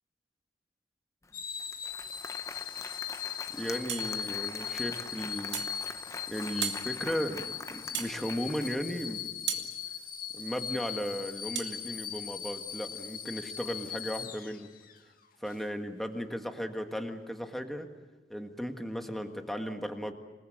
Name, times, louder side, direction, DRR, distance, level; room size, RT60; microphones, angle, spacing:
Applause, 1.2-1.3 1.6-9.1, left 3 dB, 15° left, 0.8 m, -44 dB
sound 1, 1.3-15.0 15.5-15.6, left 8 dB, 55° left, 2.1 m, -39 dB
voice 1, 3.5-5.7 6.3-9.5 10.3-14.7 15.4-17.9 18.3-20.1, equal, ahead, 4 dB, 1.7 m, -36 dB
sound 2, 3.9-4.1 5.5-5.7 6.6-6.8 7.9-8.2 9.5-9.7 11.5-11.7, right 10 dB, 90° right, 2.5 m, -34 dB
27.0 x 20.5 x 8.0 m, 1.2 s
head